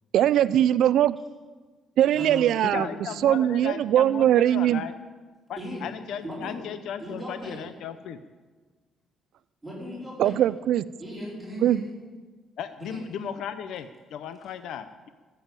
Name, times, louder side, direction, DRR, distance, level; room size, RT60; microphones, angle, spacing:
voice 1, 0.1-1.2 2.0-2.9 3.2-4.8 10.2-10.8 11.6-11.8, right 11 dB, 75° right, 16 dB, 0.4 m, -21 dB
voice 2, 2.1-3.0 5.6-5.8 6.2-6.6 7.0-7.7 9.6-10.4 11.0-11.9 12.8-13.0, equal, 5° right, -6 dB, 4.7 m, -37 dB
voice 3, 2.6-4.9 5.5-8.2 12.6-15.1, left 8 dB, 75° left, 11 dB, 0.7 m, -36 dB
14.0 x 7.7 x 8.9 m, 1.4 s
cardioid pair, 115°, 0 cm